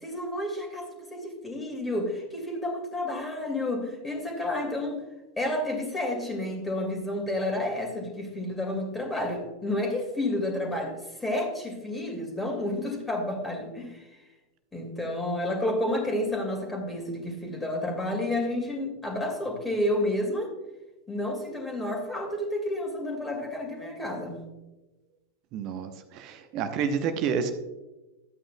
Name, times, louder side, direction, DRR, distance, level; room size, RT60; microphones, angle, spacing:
voice 1, 0.0-5.0 5.4-10.9 11.2-14.0 14.7-20.5 21.1-24.4, left 1 dB, 10° left, 1 dB, 2.2 m, -30 dB
voice 2, 25.5-27.5, right 6 dB, 40° right, 8 dB, 0.8 m, -29 dB
12.5 x 8.8 x 2.3 m, 1.1 s
figure-of-eight pair, 90°, 0 cm